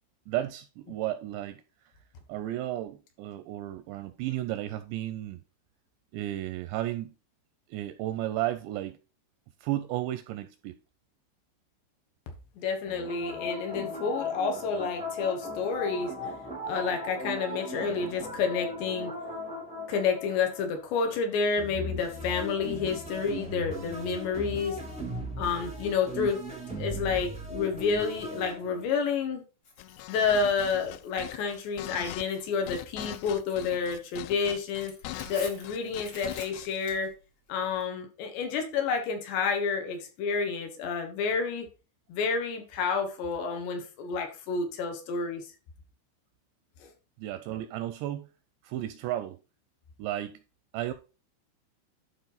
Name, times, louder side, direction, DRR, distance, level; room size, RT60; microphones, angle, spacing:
voice 1, 0.3-1.6 2.3-5.4 6.1-7.1 7.7-9.0 9.6-10.8 47.2-48.3 48.6-49.4 50.0-50.4 50.7-50.9, right 14 dB, 85° right, 2.6 m, -33 dB
voice 2, 12.6-16.1 16.7-19.1 19.9-24.8 25.4-26.4 26.8-29.4 30.1-34.9 35.3-37.1 37.5-41.7 42.1-45.5 46.8-46.9, left 5 dB, 70° left, 3.3 m, -29 dB
sound 1, 12.8-21.0 21.6-29.0, left 1 dB, 5° right, 0.7 m, -38 dB
Tearing, 29.6-37.9, left 3 dB, 45° left, 1.7 m, -51 dB
sound 2, 29.8-36.7, left 16 dB, 85° left, 2.4 m, -41 dB
11.5 x 4.5 x 4.0 m
omnidirectional pair, 5.5 m